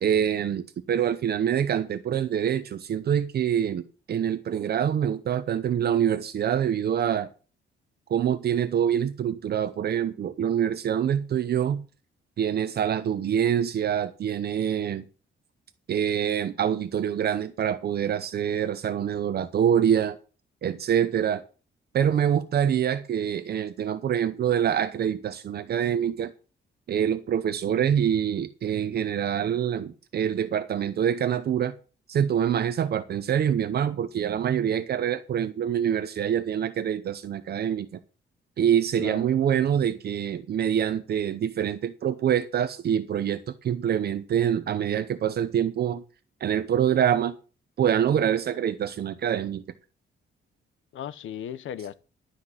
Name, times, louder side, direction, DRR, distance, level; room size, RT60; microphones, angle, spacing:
voice 1, 0.0-7.3 8.1-11.8 12.4-15.0 15.9-20.2 20.6-21.4 21.9-26.3 26.9-31.7 32.1-38.0 38.6-46.0 46.4-47.3 47.8-49.6, right 9 dB, 55° right, 0.8 m, -25 dB
voice 2, 39.0-39.3 50.9-51.9, left 10 dB, 80° left, 0.8 m, -37 dB
12.0 x 6.0 x 7.6 m
wide cardioid pair, 165°, 20 cm